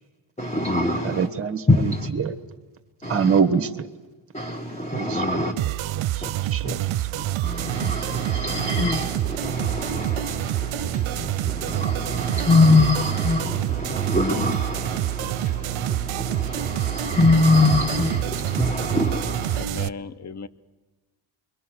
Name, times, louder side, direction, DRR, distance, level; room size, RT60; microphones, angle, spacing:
voice 1, 0.4-1.3 1.7-2.1 3.0-3.4 4.3-5.5 6.2-6.3 6.6-6.8 7.4-19.6, left 2 dB, 15° left, 1.7 m, -24 dB
voice 2, 1.0-2.3 3.1-3.9 4.9-5.5 6.0-7.2 8.3-8.4, right 6 dB, 25° right, 1.3 m, -26 dB
sound 1, 5.6-19.9, right 15 dB, 70° right, 0.7 m, -27 dB
voice 3, 19.6-20.5, left 5 dB, 35° left, 0.9 m, -36 dB
29.0 x 23.0 x 6.3 m
cardioid pair, 85°, 50 cm